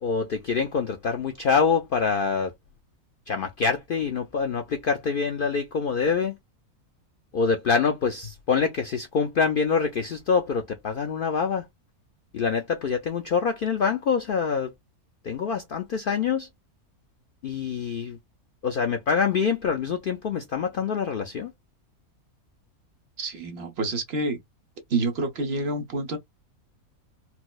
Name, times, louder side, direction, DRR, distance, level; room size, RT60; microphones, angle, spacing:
voice 1, 0.0-2.5 3.3-6.4 7.3-11.7 12.3-14.7 15.2-16.5 17.4-18.2 18.6-21.5, left 5 dB, 90° left, 0.4 m, -25 dB
voice 2, 23.2-24.4 24.9-26.2, right 2 dB, 50° right, 1.0 m, -28 dB
4.4 x 2.0 x 2.3 m
omnidirectional pair, 1.5 m